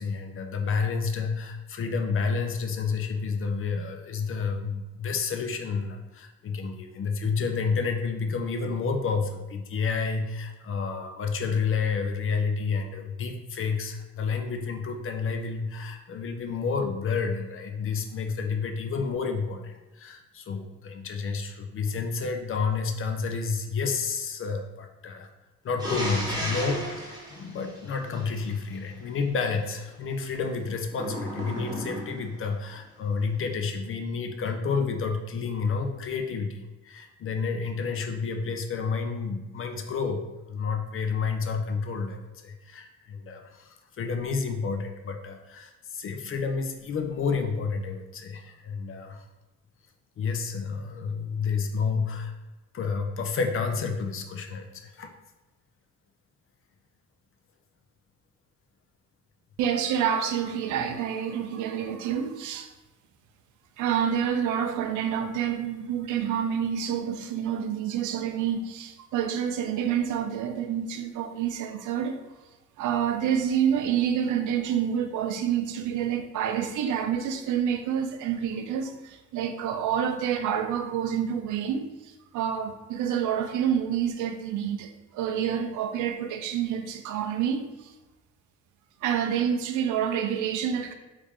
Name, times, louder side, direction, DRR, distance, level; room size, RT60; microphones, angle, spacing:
voice 1, 0.0-25.3 25.6-49.2 50.2-52.3 52.7-55.1, left 5 dB, 45° left, 0.5 m, -30 dB
sound 1, 25.8-28.5 30.9-32.3, equal, 15° right, 1.0 m, -34 dB
voice 2, 59.6-62.7 63.8-72.2 72.8-87.9 89.0-90.9, right 8 dB, 80° right, 0.5 m, -28 dB
3.1 x 2.5 x 3.5 m
cardioid pair, 90°, 30 cm